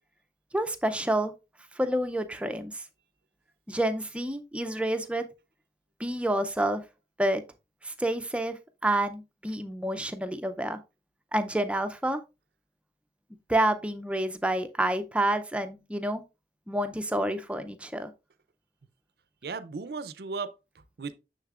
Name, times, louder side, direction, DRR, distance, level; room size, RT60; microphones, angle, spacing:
voice 1, 0.5-1.3 1.7-2.9 3.7-5.3 6.0-6.8 7.2-7.4 7.8-10.8 11.3-12.2 13.5-16.2 16.7-18.1, right 1 dB, 5° right, 0.5 m, -28 dB
voice 2, 19.4-21.1, right 4 dB, 65° right, 0.5 m, -36 dB
6.7 x 6.5 x 2.4 m
head